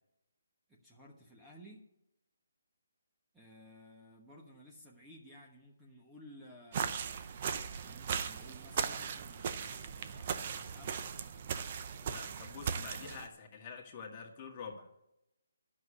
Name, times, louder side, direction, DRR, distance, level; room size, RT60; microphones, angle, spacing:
voice 1, 0.7-1.8 3.3-7.2 7.8-11.1, equal, 5° right, -3 dB, 1.3 m, -56 dB
sound 1, 6.7-13.3, right 7 dB, 35° right, 0.7 m, -38 dB
voice 2, 12.0-14.9, left 6 dB, 25° left, 1 dB, 1.8 m, -47 dB
10.5 x 6.5 x 8.5 m, 0.85 s
hypercardioid pair, 160°, 0 cm